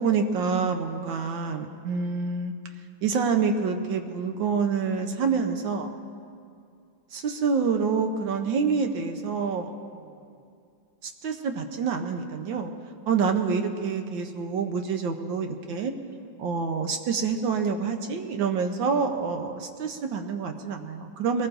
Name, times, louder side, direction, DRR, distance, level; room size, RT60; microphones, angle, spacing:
voice 1, 0.0-2.5 3.0-5.9 7.1-10.1 11.0-12.7 13.1-15.9 16.4-21.5, right 5 dB, 75° right, 5 dB, 1.5 m, -27 dB
22.5 x 19.5 x 2.6 m, 2.4 s
omnidirectional pair, 2.1 m